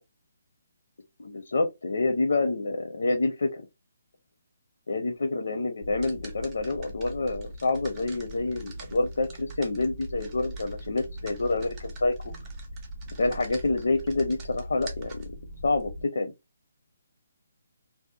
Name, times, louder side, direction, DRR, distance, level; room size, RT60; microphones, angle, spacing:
voice 1, 1.2-3.6 4.9-12.1 13.2-15.2 15.6-16.3, left 3 dB, 70° left, 0.6 m, -27 dB
sound 1, 5.8-16.0, right 1 dB, 15° right, 0.5 m, -40 dB
2.7 x 2.0 x 2.3 m
hypercardioid pair, 180°, 0 cm